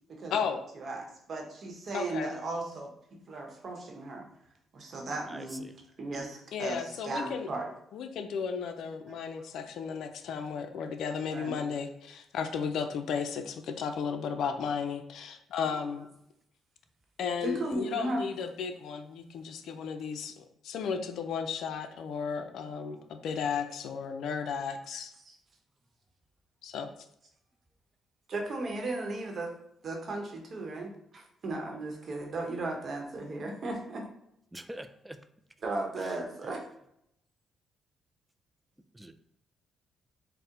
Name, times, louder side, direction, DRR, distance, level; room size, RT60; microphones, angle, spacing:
voice 1, 0.1-2.9 3.3-4.3 4.7-5.6 6.0-7.7 9.1-9.2 11.2-11.6 15.8-16.0 17.4-18.2 25.2-25.4 28.3-29.5 29.8-34.0 35.6-36.6, right 2 dB, 50° right, 0.9 m, -36 dB
voice 2, 1.9-2.3 6.5-7.5 7.9-16.1 17.2-25.1 26.6-26.9, left 6 dB, 75° left, 0.4 m, -34 dB
voice 3, 5.3-5.7 34.5-35.2 36.0-36.2 38.9-39.1, right 1 dB, 10° right, 0.3 m, -44 dB
4.5 x 2.1 x 3.7 m
cardioid pair, 90°, 0 cm